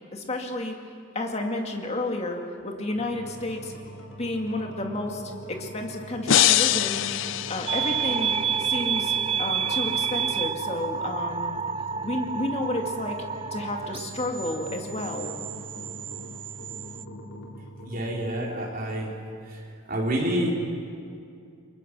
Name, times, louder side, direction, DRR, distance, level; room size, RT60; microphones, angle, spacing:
voice 1, 0.1-0.8 1.1-3.7 4.2-5.2 5.5-7.0 7.5-8.3 8.6-11.6 12.0-13.2 13.5-15.3, left 1 dB, 30° left, 2 dB, 2.2 m, -31 dB
sound 1, 2.9-18.3, equal, 80° left, 4.0 m, -43 dB
sound 2, 6.3-8.4, left 12 dB, 65° left, 0.5 m, -23 dB
sound 3, 7.7-17.0, right 7 dB, 25° right, 0.5 m, -30 dB
voice 2, 17.9-19.1 19.5-19.6 19.9-20.5, right 1 dB, 45° right, -2 dB, 4.2 m, -28 dB
29.5 x 22.5 x 6.2 m, 2.5 s
head